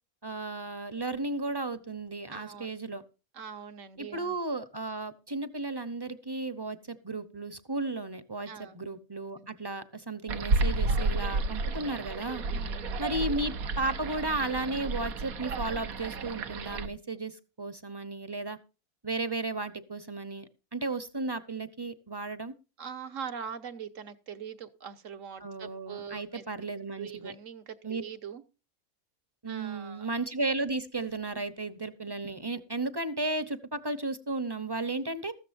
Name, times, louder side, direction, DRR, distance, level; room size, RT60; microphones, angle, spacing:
voice 1, 0.2-3.0 4.0-12.4 13.0-18.6 19.0-22.5 25.4-27.3 27.8-28.0 29.4-35.3, right 2 dB, 20° right, 13 dB, 0.8 m, -34 dB
voice 2, 2.3-2.7 3.3-4.4 8.5-8.8 9.4-9.5 12.5-12.9 22.8-26.4 27.0-28.4 29.5-30.1, right 7 dB, 65° right, 9 dB, 1.4 m, -42 dB
sound 1, 10.3-16.9, right 3 dB, 85° right, 1.5 m, -31 dB
14.5 x 13.0 x 2.6 m, 0.31 s
omnidirectional pair, 1.5 m